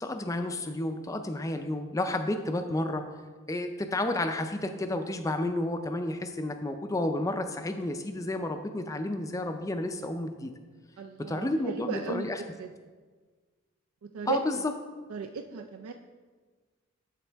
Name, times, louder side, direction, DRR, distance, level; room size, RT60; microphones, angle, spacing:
voice 1, 0.0-3.1 3.5-10.5 11.2-12.4 14.3-14.7, left 1 dB, 15° left, 7 dB, 0.4 m, -31 dB
voice 2, 11.0-12.3 12.6-12.7 14.0-14.6 15.1-15.9, right 5 dB, 75° right, 5 dB, 0.4 m, -36 dB
11.5 x 4.2 x 3.4 m, 1.4 s
head